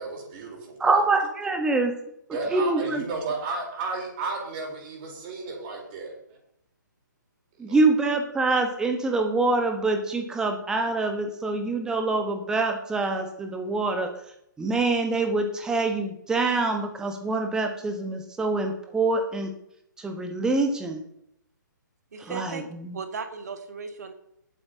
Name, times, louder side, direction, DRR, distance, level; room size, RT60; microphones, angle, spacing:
voice 1, 0.0-1.0 2.3-6.4 7.7-7.8, right 3 dB, 30° right, -1 dB, 4.0 m, -33 dB
voice 2, 0.8-2.0 2.5-3.0 7.6-14.1 14.6-19.5 20.0-21.0 22.3-23.0, right 3 dB, 5° right, 5 dB, 1.3 m, -25 dB
voice 3, 22.1-22.7 22.9-24.1, right 5 dB, 55° right, 7 dB, 1.8 m, -36 dB
20.0 x 9.0 x 2.9 m, 0.75 s
figure-of-eight pair, 130°, 11 cm